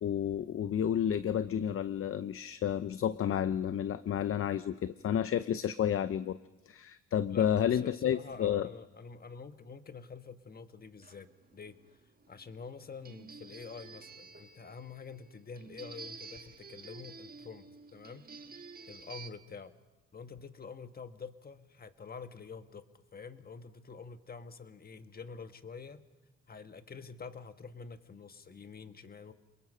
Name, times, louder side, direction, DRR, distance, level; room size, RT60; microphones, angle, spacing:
voice 1, 0.0-6.4 6.7-8.7, left 9 dB, 45° left, 14 dB, 0.7 m, -31 dB
voice 2, 7.3-11.8 12.3-17.6 17.9-18.3 18.9-19.7 20.1-26.0 26.5-29.3, left 5 dB, 30° left, 9 dB, 1.4 m, -47 dB
sound 1, 11.0-19.3, right 4 dB, 30° right, 1.6 m, -50 dB
28.0 x 21.0 x 5.6 m, 1.2 s
cardioid pair, 90°, 30 cm